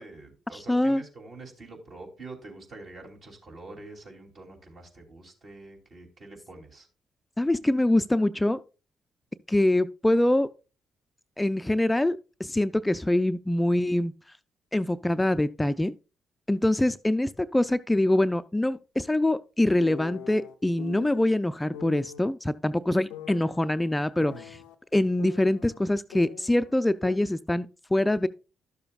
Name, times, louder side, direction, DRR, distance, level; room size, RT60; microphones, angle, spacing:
voice 1, 0.0-6.9 24.2-24.5, right 3 dB, 60° right, 2.9 m, -46 dB
voice 2, 0.5-1.0 7.4-8.6 9.5-10.5 11.4-14.1 14.7-15.9 16.5-24.6 24.9-28.3, left 1 dB, 10° left, 0.4 m, -24 dB
sound 1, 19.8-21.3 21.7-22.2 23.1-24.8 25.2-26.8 27.0-27.2, left 9 dB, 85° left, 0.4 m, -43 dB
12.0 x 6.8 x 2.4 m
hypercardioid pair, 50°, 0 cm